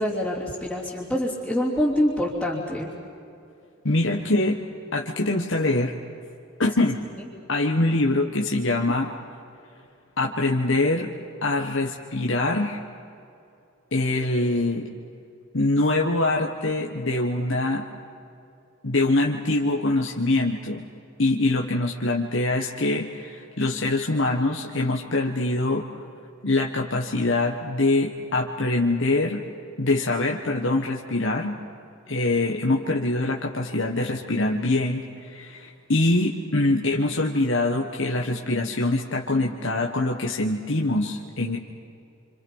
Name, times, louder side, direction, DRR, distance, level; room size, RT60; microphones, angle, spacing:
voice 1, 0.0-2.9, left 1 dB, ahead, -8 dB, 3.3 m, -25 dB
voice 2, 3.8-4.6 4.9-5.9 6.6-7.0 7.5-9.1 10.2-11.1 11.4-12.8 13.9-14.9 15.5-17.8 18.8-20.9 21.2-25.8 26.4-29.4 29.8-31.6 32.1-41.6, left 2 dB, 65° left, 0 dB, 1.6 m, -24 dB
29.0 x 27.0 x 5.6 m, 2.6 s
head